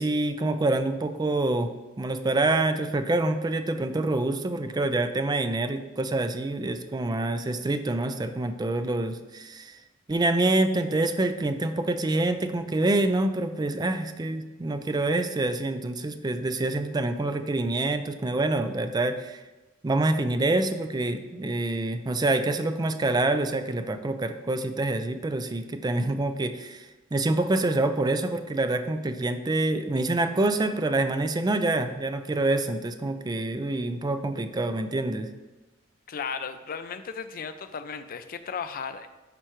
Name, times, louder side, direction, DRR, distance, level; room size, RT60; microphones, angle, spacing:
voice 1, 0.0-1.7 2.0-9.8 10.1-19.4 19.8-26.8 27.1-35.3, right 2 dB, 20° right, 9 dB, 0.4 m, -26 dB
voice 2, 36.1-39.1, left 6 dB, 50° left, 10 dB, 0.4 m, -35 dB
11.0 x 4.5 x 3.0 m, 1.1 s
head